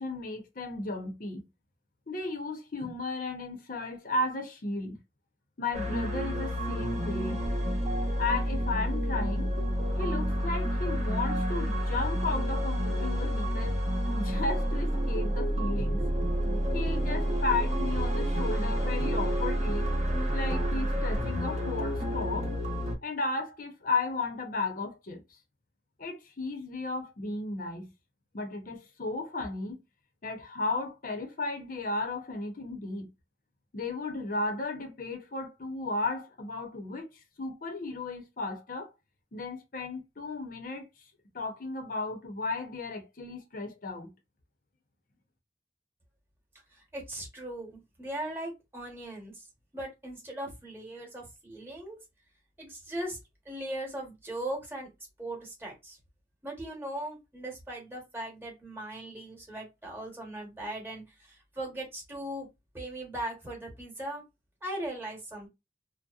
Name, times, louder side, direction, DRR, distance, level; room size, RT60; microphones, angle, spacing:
voice 1, 0.0-1.4 2.1-5.0 5.6-7.5 8.2-9.5 10.0-13.8 14.1-16.1 16.7-19.9 20.3-22.5 23.0-25.2 26.0-27.9 28.3-29.8 30.2-33.1 33.7-37.1 37.4-38.9 39.3-40.9 41.3-44.1, left 3 dB, 50° left, 0.6 m, -34 dB
sound 1, 5.7-23.0, equal, 40° right, 0.7 m, -29 dB
voice 2, 46.7-49.5 49.7-52.0 52.6-53.2 53.4-54.9 55.2-56.0 56.4-62.5 62.7-64.2 64.6-65.5, right 1 dB, 15° right, 1.0 m, -39 dB
2.7 x 2.1 x 2.3 m
head